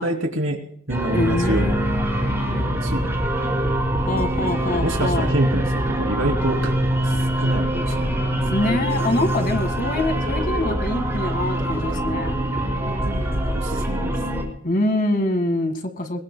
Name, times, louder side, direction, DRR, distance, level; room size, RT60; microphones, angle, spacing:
voice 1, 0.0-1.8 2.8-3.8 4.4-6.7 7.0-8.2 8.6-8.7 11.6-11.9 12.8-14.2, right 1 dB, 75° right, 4 dB, 3.0 m, -28 dB
sound 1, 0.9-14.4, right 1 dB, 15° right, 4.5 m, -24 dB
voice 2, 1.1-2.7 4.1-5.3 8.5-12.4 14.6-16.2, left 1 dB, 45° left, 7 dB, 1.9 m, -25 dB
24.5 x 20.5 x 2.2 m, 0.65 s
head